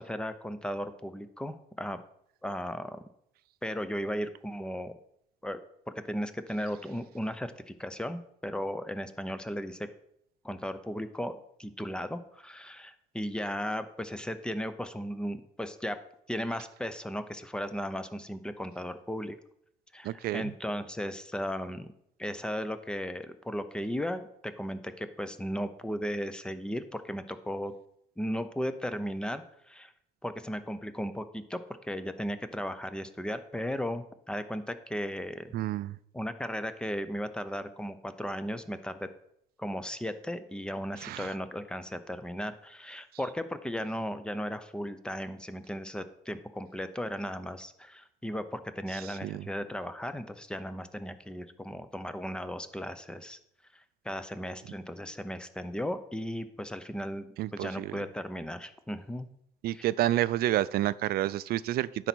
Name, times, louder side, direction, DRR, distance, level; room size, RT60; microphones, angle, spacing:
voice 1, 0.0-2.0 2.4-3.0 3.6-4.9 5.4-5.6 5.9-9.9 10.4-16.0 16.3-19.4 19.9-21.9 22.2-27.7 28.2-29.9 30.2-35.6 36.1-39.1 39.6-53.4 54.0-59.3 59.7-59.9, equal, 5° left, 11 dB, 0.7 m, -36 dB
voice 2, 20.0-20.4 35.5-36.0 41.0-41.3 49.0-49.5 57.4-58.0 59.6-62.1, right 14 dB, 65° right, 17 dB, 0.4 m, -29 dB
9.9 x 4.1 x 6.1 m, 0.73 s
cardioid pair, 110°, 17 cm